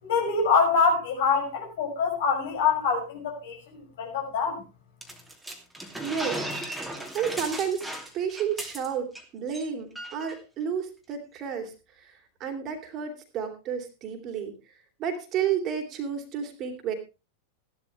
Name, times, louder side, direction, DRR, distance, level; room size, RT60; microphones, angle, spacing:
voice 1, 0.0-4.6, left 5 dB, 55° left, 6.3 m, -25 dB
sound 1, 5.0-9.2 9.5-9.7 10.0-10.3, right 1 dB, 5° right, 2.8 m, -36 dB
voice 2, 6.0-6.4 7.1-7.9 8.1-11.7 12.0-12.1 12.4-14.5 15.0-16.9, right 7 dB, 35° right, 3.1 m, -31 dB
15.5 x 12.0 x 3.3 m
figure-of-eight pair, 90°, 0 cm